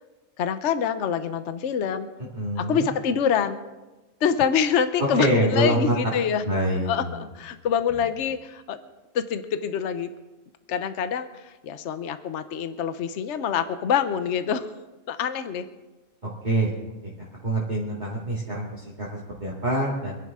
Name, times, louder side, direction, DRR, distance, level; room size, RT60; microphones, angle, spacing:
voice 1, 0.4-2.1 2.6-3.6 4.2-6.4 6.8-8.8 9.1-10.1 10.7-14.7 15.1-15.7, left 7 dB, 60° left, 10 dB, 1.1 m, -26 dB
voice 2, 2.3-2.9 5.0-6.1 6.4-7.3 7.9-8.0 16.2-16.7 17.0-20.2, right 1 dB, 30° right, -6 dB, 2.2 m, -26 dB
26.5 x 10.5 x 3.7 m, 1.1 s
omnidirectional pair, 1.4 m